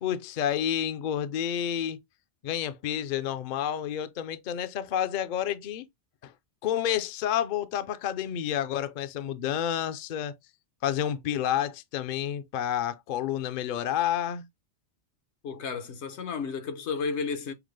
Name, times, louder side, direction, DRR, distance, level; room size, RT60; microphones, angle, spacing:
voice 1, 0.0-2.0 2.4-5.9 6.2-6.3 6.6-10.3 10.8-14.5, left 10 dB, 60° left, 0.5 m, -29 dB
voice 2, 15.4-17.5, left 5 dB, 80° left, 1.1 m, -32 dB
5.8 x 2.0 x 3.1 m
omnidirectional pair, 1.2 m